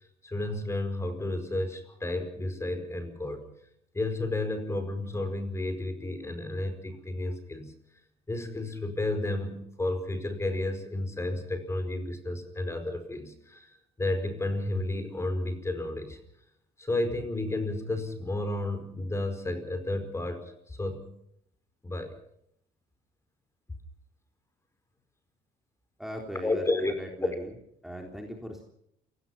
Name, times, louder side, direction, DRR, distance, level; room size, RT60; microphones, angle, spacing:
voice 1, 0.2-3.5 3.9-7.7 8.3-16.2 16.8-21.1 21.8-22.1 26.4-26.9 27.2-27.3, left 2 dB, 15° left, 9 dB, 4.9 m, -32 dB
voice 2, 26.0-27.5 27.8-28.6, equal, ahead, 1 dB, 3.5 m, -39 dB
28.5 x 18.0 x 5.8 m, 0.74 s
cardioid pair, 110°, 17 cm